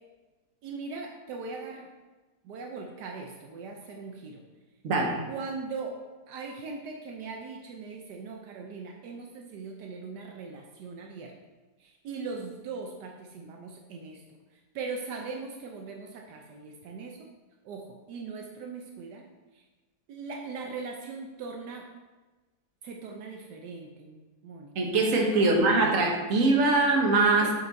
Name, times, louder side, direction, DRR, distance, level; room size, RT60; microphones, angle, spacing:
voice 1, 0.6-1.9 2.4-4.4 5.3-6.0 6.3-11.3 11.8-14.2 14.7-17.3 17.6-19.3 19.5-19.6 20.1-21.9 22.8-24.7 25.3-25.6 27.4-27.5, right 4 dB, 80° right, 1 dB, 1.3 m, -40 dB
voice 2, 4.8-5.2 24.7-27.5, right 2 dB, 55° right, 0 dB, 1.4 m, -22 dB
7.5 x 4.7 x 4.0 m, 1.2 s
omnidirectional pair, 1.8 m